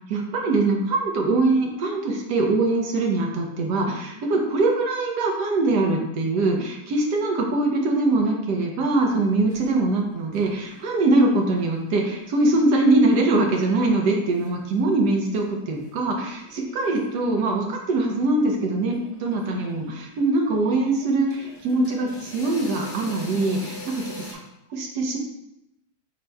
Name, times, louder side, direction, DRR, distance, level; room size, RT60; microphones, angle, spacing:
voice 1, 0.1-24.4 24.7-25.2, right 2 dB, 90° right, 1 dB, 1.4 m, -22 dB
sound 1, 8.9-15.9 16.2-17.6 18.5-18.6 18.9-24.3, left 1 dB, 35° left, 1.1 m, -44 dB
4.3 x 2.2 x 4.7 m, 0.88 s
omnidirectional pair, 1.7 m